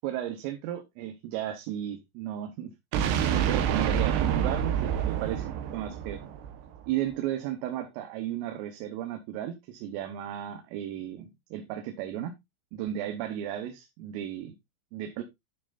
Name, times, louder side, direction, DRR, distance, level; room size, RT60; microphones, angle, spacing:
voice 1, 0.0-2.7 3.3-5.5 5.7-6.2 6.9-12.3 12.7-14.6 14.9-15.2, right 11 dB, 85° right, 3.6 m, -34 dB
sound 1, 2.9-6.9, right 9 dB, 70° right, 3.0 m, -27 dB
12.5 x 6.2 x 2.5 m
omnidirectional pair, 5.7 m